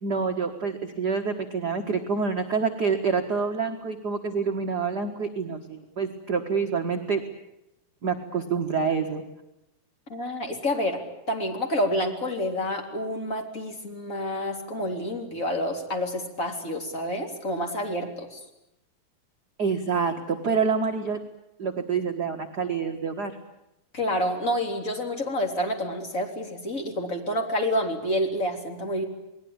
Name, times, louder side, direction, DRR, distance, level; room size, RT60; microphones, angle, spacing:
voice 1, 0.0-7.2 8.0-9.2 19.6-21.2 21.6-23.3, right 5 dB, 50° right, 3 dB, 1.2 m, -27 dB
voice 2, 10.1-11.0 11.3-18.4 23.9-29.0, equal, 20° left, 3 dB, 3.7 m, -28 dB
29.0 x 20.0 x 8.8 m, 0.87 s
omnidirectional pair, 4.2 m